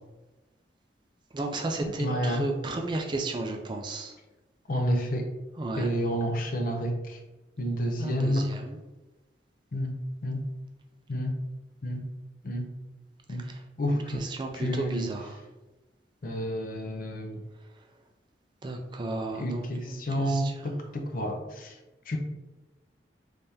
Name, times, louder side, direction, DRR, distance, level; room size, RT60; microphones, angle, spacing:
voice 1, 1.3-4.2 5.6-5.9 8.0-8.8 13.4-13.6 14.1-15.4 18.6-20.7, right 2 dB, 25° right, 3 dB, 0.3 m, -34 dB
voice 2, 2.0-2.5 4.7-5.3 5.8-7.2 7.6-8.5 9.7-10.5 11.1-11.3 11.8-12.0 12.4-12.7 13.3-13.5 13.8-14.3 14.5-15.1 16.2-17.4 19.3-21.7 22.1-22.2, equal, 50° left, 3 dB, 0.5 m, -30 dB
3.5 x 3.2 x 2.7 m, 1.1 s
head